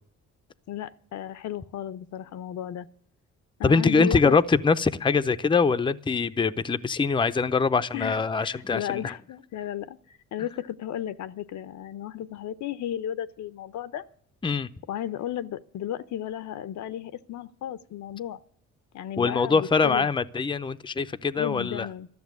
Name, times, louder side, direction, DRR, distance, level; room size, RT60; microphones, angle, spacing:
voice 1, 0.7-2.9 3.6-4.4 7.9-14.0 14.9-18.4 18.9-20.1 21.4-22.1, left 11 dB, 70° left, 0.7 m, -34 dB
voice 2, 3.6-9.1 14.4-14.7 19.2-21.9, left 4 dB, 15° left, 0.6 m, -23 dB
13.0 x 6.9 x 9.4 m
cardioid pair, 90°, 30 cm